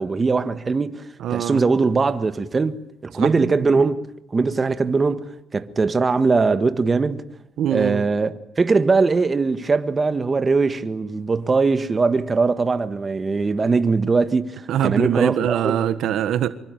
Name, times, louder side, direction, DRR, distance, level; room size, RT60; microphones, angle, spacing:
voice 1, 0.0-4.0 4.3-7.2 7.7-15.8, right 4 dB, 30° right, 1.7 m, -21 dB
voice 2, 1.2-1.6 3.2-3.9 7.6-8.0 14.7-16.5, right 11 dB, 80° right, 1.5 m, -23 dB
25.5 x 24.0 x 9.4 m
cardioid pair, 90°, 0 cm